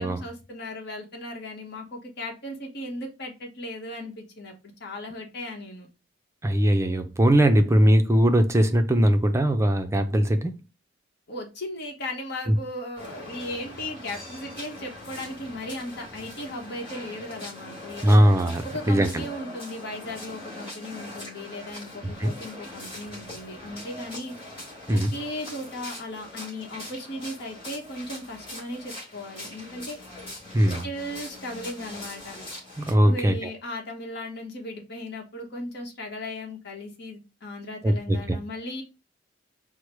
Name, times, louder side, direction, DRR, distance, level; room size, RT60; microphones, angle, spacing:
voice 1, 0.0-5.9 11.3-18.2 18.6-24.4 24.9-30.0 30.8-32.4 33.0-38.8, left 1 dB, 55° left, 1.1 m, -37 dB
voice 2, 6.4-10.5 12.5-12.6 18.0-19.2 22.0-22.3 24.9-25.1 30.5-30.9 32.8-33.5 37.8-38.4, equal, 15° right, 0.5 m, -20 dB
sound 1, 13.0-32.9, left 1 dB, 25° left, 2.9 m, -41 dB
4.6 x 2.1 x 4.6 m
head